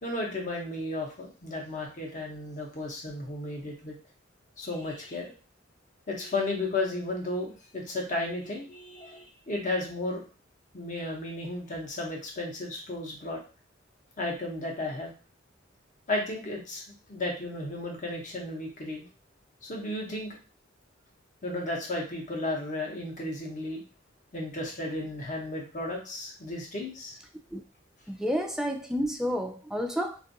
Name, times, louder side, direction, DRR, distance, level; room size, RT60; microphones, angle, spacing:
voice 1, 0.0-3.9 4.6-5.3 6.1-10.2 10.7-13.4 14.2-15.1 16.1-16.8 17.1-19.1 19.6-20.4 21.4-23.8 24.3-27.2, left 2 dB, 40° left, -1 dB, 0.8 m, -34 dB
voice 2, 28.1-30.2, equal, 5° right, 3 dB, 0.3 m, -30 dB
2.5 x 2.5 x 2.6 m, 0.34 s
head